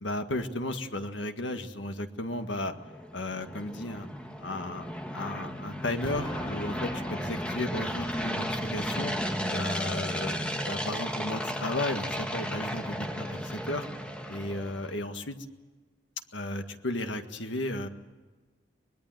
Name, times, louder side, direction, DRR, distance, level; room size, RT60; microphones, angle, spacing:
voice 1, 0.0-2.7 3.1-4.1 4.4-9.1 9.5-10.4 10.7-13.9 14.3-15.4 16.3-17.9, left 1 dB, 75° left, 6 dB, 1.8 m, -34 dB
sound 1, 2.7-14.9, equal, 5° left, 1.8 m, -34 dB
Explosion, 6.0-9.0, left 1 dB, 25° left, 1.4 m, -43 dB
24.0 x 21.0 x 9.1 m, 1.3 s
head